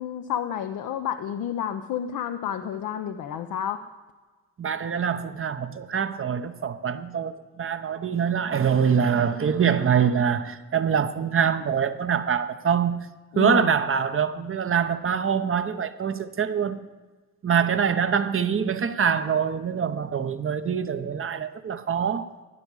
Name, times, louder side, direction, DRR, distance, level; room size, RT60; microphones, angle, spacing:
voice 1, 0.0-3.8 13.3-13.7, left 9 dB, 65° left, 0.7 m, -30 dB
voice 2, 4.6-13.1 13.4-16.8 17.4-22.3, right 7 dB, 40° right, 0.8 m, -24 dB
10.5 x 9.9 x 4.8 m
hypercardioid pair, 45°, 35 cm